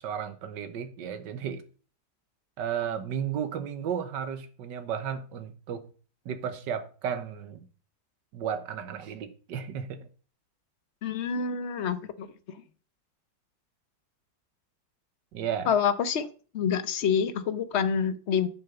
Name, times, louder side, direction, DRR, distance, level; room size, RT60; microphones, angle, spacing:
voice 1, 0.0-1.6 2.6-5.9 6.2-7.6 8.3-10.1 15.3-15.7, right 8 dB, 90° right, 1.7 m, -33 dB
voice 2, 11.0-12.3 15.7-16.3 16.5-18.5, left 7 dB, 50° left, 1.0 m, -27 dB
10.5 x 6.6 x 6.9 m
omnidirectional pair, 1.9 m